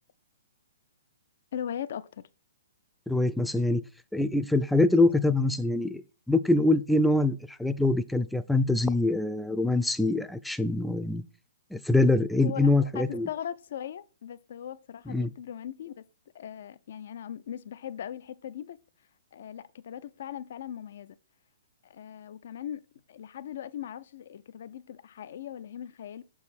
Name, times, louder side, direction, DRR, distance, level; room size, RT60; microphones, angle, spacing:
voice 1, 1.5-2.2 12.4-16.0 16.3-18.8 19.3-21.2 21.8-22.8 23.1-26.2, left 10 dB, 60° left, 0.5 m, -39 dB
voice 2, 3.1-3.8 4.1-6.0 6.3-11.2 11.7-13.3 15.1-15.3, left 2 dB, ahead, 0.4 m, -24 dB
6.8 x 4.7 x 4.2 m
hypercardioid pair, 130°, 0 cm